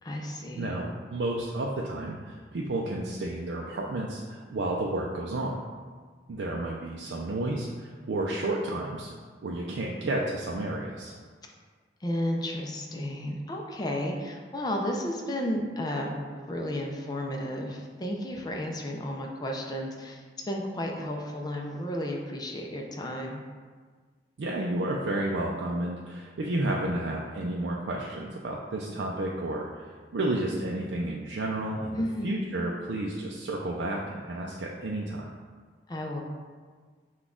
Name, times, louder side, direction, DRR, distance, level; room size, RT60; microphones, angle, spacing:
voice 1, 0.0-0.8 12.0-23.4 32.0-32.5 35.9-36.2, left 1 dB, 25° left, 1 dB, 0.5 m, -33 dB
voice 2, 0.6-5.6 6.3-9.1 9.4-11.1 24.4-35.3, right 1 dB, 80° right, -2 dB, 0.4 m, -31 dB
6.0 x 2.3 x 3.6 m, 1.5 s
head